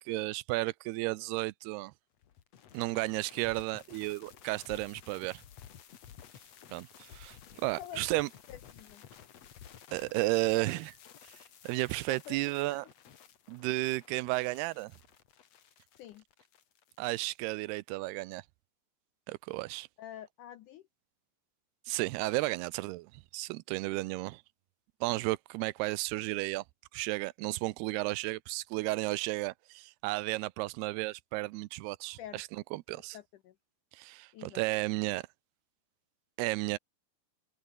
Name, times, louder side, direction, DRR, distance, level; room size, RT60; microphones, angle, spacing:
voice 1, 0.0-1.9 2.7-5.4 6.7-8.3 9.9-10.9 11.6-12.9 13.5-14.9 17.0-18.4 19.3-19.9 21.9-24.4 25.0-26.6 26.9-33.2 33.9-35.2 36.4-36.8, right 20 dB, 80° right, 2.6 m, -33 dB
sound 1, 2.2-17.5, left 9 dB, 50° left, 2.4 m, -54 dB
voice 2, 7.8-8.2 8.5-9.0 10.5-10.8 12.1-12.8 16.0-16.2 20.0-20.8 32.2-32.4 33.1-33.6 34.3-34.6, left 11 dB, 75° left, 1.9 m, -47 dB
omnidirectional pair, 4.7 m